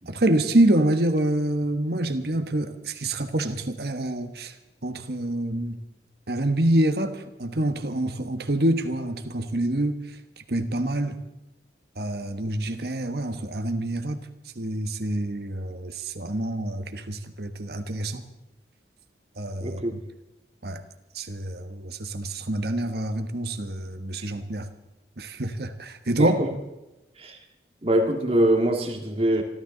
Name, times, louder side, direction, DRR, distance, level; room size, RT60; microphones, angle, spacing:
voice 1, 0.1-4.5 4.8-5.8 6.3-10.0 10.5-11.2 12.0-14.2 14.5-18.2 19.4-19.8 20.6-20.8 21.1-24.7 25.2-26.4, right 1 dB, 60° right, 7 dB, 1.2 m, -26 dB
voice 2, 19.6-19.9 26.2-26.5 27.2-27.4 27.8-29.4, right 1 dB, 30° right, 3 dB, 2.1 m, -23 dB
27.0 x 12.5 x 3.9 m, 1.0 s
head